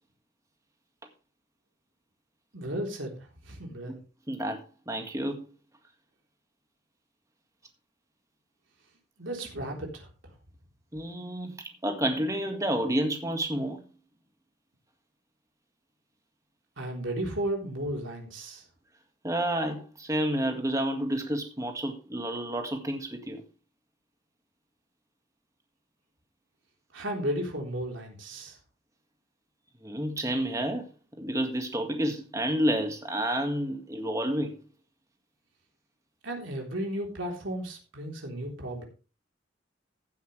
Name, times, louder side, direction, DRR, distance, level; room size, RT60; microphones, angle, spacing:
voice 1, 2.5-4.0 9.2-10.1 16.8-18.6 26.9-28.6 36.2-38.8, right 1 dB, 85° right, 3.8 m, -34 dB
voice 2, 4.3-5.5 10.9-11.5 11.8-13.8 19.2-23.4 29.8-30.9 31.2-34.6, right 1 dB, 15° right, 1.8 m, -30 dB
15.5 x 7.9 x 3.3 m
head